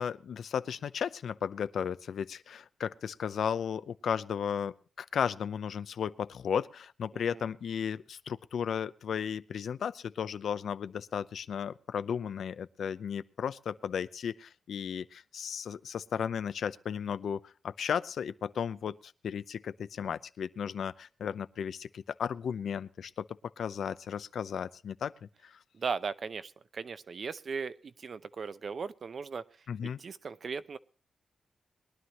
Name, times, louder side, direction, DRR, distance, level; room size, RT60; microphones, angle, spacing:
voice 1, 0.0-23.3 23.6-25.1 25.4-25.6 29.7-30.0, left 7 dB, 80° left, 15 dB, 0.6 m, -35 dB
voice 2, 7.1-7.5 25.7-29.4 29.8-30.8, right 5 dB, 55° right, 14 dB, 0.7 m, -38 dB
22.0 x 11.0 x 3.0 m, 0.38 s
wide cardioid pair, 110°, 0 cm